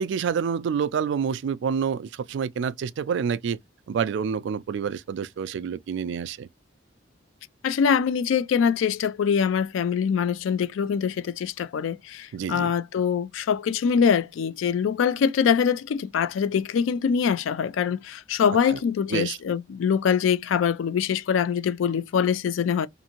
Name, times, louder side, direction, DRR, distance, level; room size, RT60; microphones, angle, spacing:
voice 1, 0.0-3.6 3.9-6.5 12.3-12.7 18.7-18.8 19.1-19.4, right 7 dB, 65° right, 0.3 m, -28 dB
voice 2, 7.6-22.9, left 7 dB, 85° left, 0.3 m, -24 dB
2.6 x 2.5 x 2.8 m
head